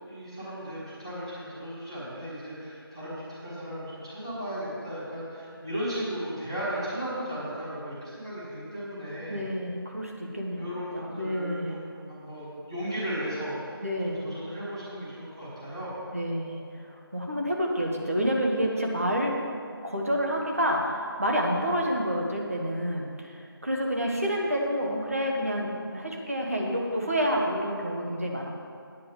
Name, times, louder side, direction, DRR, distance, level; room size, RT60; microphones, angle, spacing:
voice 1, 0.1-9.5 10.6-11.6 11.9-15.9, equal, 10° right, -11 dB, 1.8 m, -36 dB
voice 2, 9.3-10.7 10.9-11.8 13.8-14.2 16.1-19.5 19.8-28.6, equal, 35° right, 0 dB, 1.3 m, -29 dB
9.8 x 9.0 x 5.1 m, 2.3 s
figure-of-eight pair, 170°, 13 cm